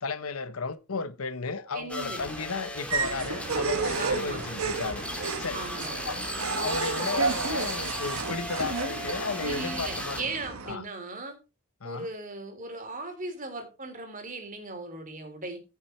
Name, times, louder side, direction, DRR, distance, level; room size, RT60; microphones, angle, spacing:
voice 1, 0.0-5.0 5.4-5.6 6.0-10.2 10.7-10.8 11.8-12.1, left 4 dB, 75° left, 1.0 m, -34 dB
voice 2, 1.7-2.2 4.0-4.4 5.5-6.0 9.4-11.4 11.8-15.6, right 3 dB, 35° right, 3.6 m, -38 dB
sound 1, 1.9-10.2, left 1 dB, 5° left, 2.7 m, -37 dB
sound 2, 2.9-10.7, right 4 dB, 75° right, 1.5 m, -32 dB
15.0 x 7.3 x 4.5 m
head